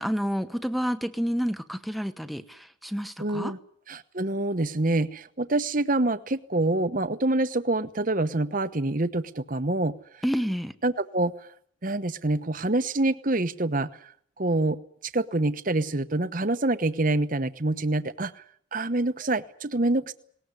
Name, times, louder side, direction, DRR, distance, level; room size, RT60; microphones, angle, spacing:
voice 1, 0.0-3.5 10.2-10.7, equal, ahead, 1.0 m, -29 dB
voice 2, 3.2-3.6 3.9-10.0 10.8-11.5 11.8-13.9 14.4-14.8 15.1-18.3 18.7-20.1, right 2 dB, 40° right, 1.0 m, -26 dB
19.5 x 19.0 x 9.7 m
head